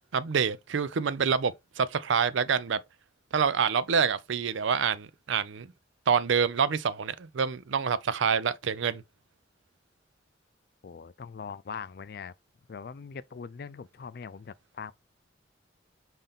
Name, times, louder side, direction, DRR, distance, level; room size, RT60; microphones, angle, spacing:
voice 1, 0.1-2.8 3.3-5.7 6.1-9.0, right 6 dB, 75° right, 0.5 m, -27 dB
voice 2, 10.8-12.3 12.7-14.9, left 6 dB, 50° left, 0.3 m, -41 dB
5.6 x 2.7 x 3.5 m
head